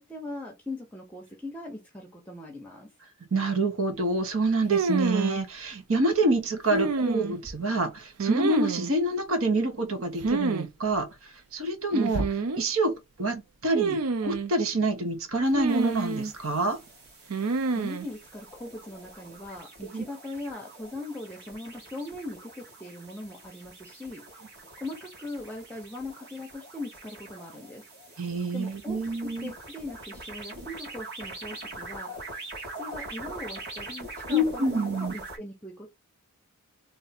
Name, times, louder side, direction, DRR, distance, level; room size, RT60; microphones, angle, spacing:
voice 1, 0.0-2.9 17.7-24.5 24.8-27.8 28.1-28.2 28.5-32.4 32.7-35.9, left 2 dB, 5° left, 0.7 m, -40 dB
voice 2, 3.3-11.1 11.5-12.3 12.6-16.8 19.9-20.0 28.2-29.5 34.3-35.1, right 2 dB, 65° right, 1.1 m, -27 dB
sound 1, 4.7-5.4 6.7-7.5 8.2-8.9 10.2-10.7 10.9-11.0 11.9-12.6 13.8-14.5 15.5-16.3 17.3-18.1, right 4 dB, 85° right, 0.5 m, -27 dB
sound 2, 15.7-35.4, right 2 dB, 50° right, 1.8 m, -44 dB
3.3 x 2.7 x 4.1 m
head